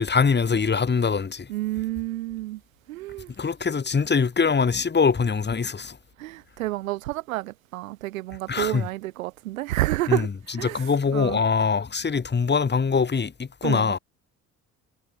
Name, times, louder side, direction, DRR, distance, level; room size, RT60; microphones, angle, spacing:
voice 1, 0.0-1.5 3.4-6.0 8.5-8.9 10.1-10.3 10.6-14.0, left 5 dB, 25° left, 2.2 m, -23 dB
voice 2, 1.5-2.6 2.9-3.3 6.2-10.3 10.5-10.9 11.1-11.4 13.6-13.9, right 17 dB, 80° right, 2.2 m, -29 dB
hypercardioid pair, 55°, 40 cm